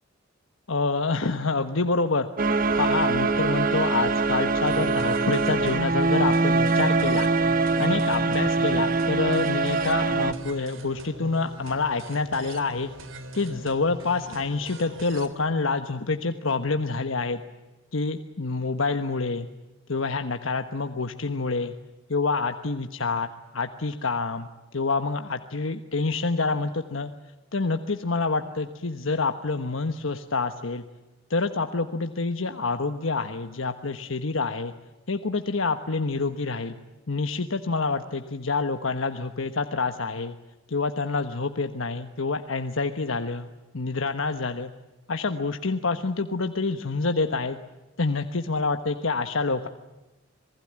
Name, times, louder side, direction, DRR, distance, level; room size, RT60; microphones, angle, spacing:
voice 1, 0.7-2.3 2.8-7.3 7.8-12.9 13.3-17.4 17.9-19.5 19.9-21.7 22.1-23.3 23.5-27.1 27.5-30.8 31.3-34.7 35.1-36.8 37.1-40.3 40.7-44.7 45.1-47.6 48.0-49.7, left 3 dB, 75° left, 7 dB, 1.3 m, -27 dB
sound 1, 2.4-10.3, right 3 dB, 45° right, 1.4 m, -23 dB
sound 2, 4.7-15.3, right 1 dB, 75° right, 3.4 m, -41 dB
27.5 x 20.0 x 8.8 m, 1.1 s
head